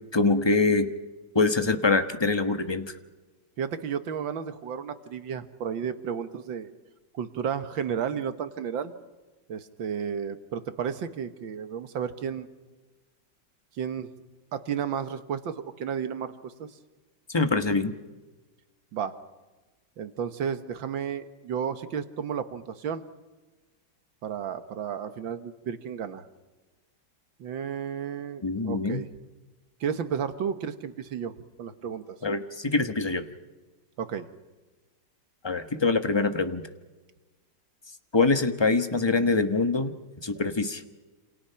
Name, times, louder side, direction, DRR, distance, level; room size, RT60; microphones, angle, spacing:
voice 1, 0.1-0.9 1.3-2.9 17.3-18.0 28.4-29.0 32.2-33.2 35.4-36.7 38.1-39.9 40.2-40.8, left 3 dB, 15° left, 9 dB, 1.0 m, -24 dB
voice 2, 3.6-6.7 7.1-8.9 9.5-12.5 13.8-14.1 14.5-16.7 18.9-19.1 20.0-23.0 24.2-26.2 27.4-29.1 29.8-32.0 34.0-34.3, right 7 dB, 85° right, 10 dB, 2.1 m, -32 dB
28.0 x 27.5 x 5.8 m, 1.2 s
omnidirectional pair, 2.0 m